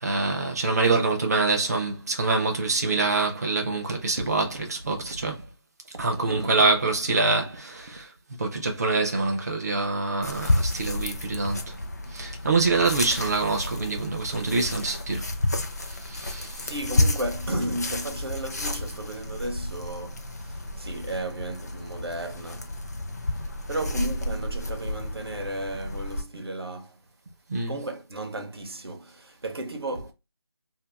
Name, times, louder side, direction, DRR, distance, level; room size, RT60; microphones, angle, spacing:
voice 1, 0.0-5.3 6.0-8.1 8.4-11.8 12.1-15.3 15.9-16.7 27.5-27.8, right 3 dB, 40° right, 0.7 m, -25 dB
voice 2, 6.1-6.6 16.6-22.7 23.7-27.0 27.7-30.1, right 1 dB, 65° right, 0.9 m, -34 dB
sound 1, 10.2-26.2, left 2 dB, 40° left, 0.5 m, -31 dB
2.8 x 2.5 x 3.4 m
figure-of-eight pair, 175°, 14 cm